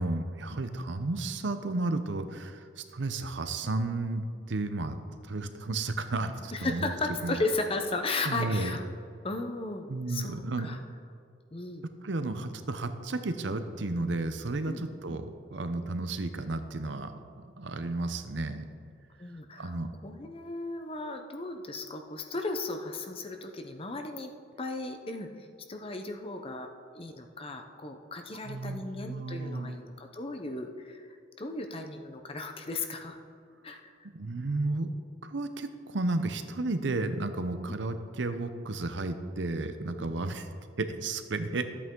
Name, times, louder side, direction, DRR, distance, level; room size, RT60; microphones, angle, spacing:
voice 1, 0.0-6.9 7.2-7.3 8.3-8.8 9.9-10.7 12.0-17.2 17.6-18.6 19.6-19.9 28.4-29.8 34.1-34.9 35.2-40.5 40.8-41.6, right 2 dB, 70° right, 9 dB, 0.7 m, -33 dB
voice 2, 6.5-8.8 9.2-10.8 11.5-11.9 14.6-14.8 15.1-15.2 19.2-19.8 20.0-24.3 24.6-25.3 25.7-26.7 26.9-33.2 33.6-33.8 37.7-37.8 39.9-40.1, left 2 dB, 30° left, 5 dB, 0.7 m, -35 dB
13.0 x 8.4 x 3.8 m, 2.3 s
head